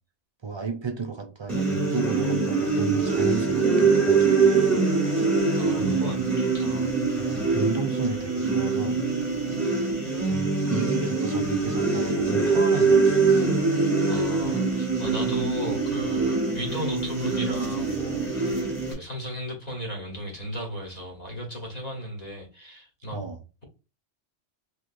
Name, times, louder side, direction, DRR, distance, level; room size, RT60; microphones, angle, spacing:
voice 1, 0.4-4.7 5.7-6.3 7.2-9.0 10.2-13.6 23.1-23.4, right 5 dB, 35° right, 0.5 m, -33 dB
sound 1, 1.5-18.9, right 4 dB, 15° right, 1.3 m, -23 dB
voice 2, 5.5-6.9 14.1-23.2, equal, 40° left, 1.1 m, -36 dB
3.2 x 3.1 x 2.5 m
omnidirectional pair, 1.2 m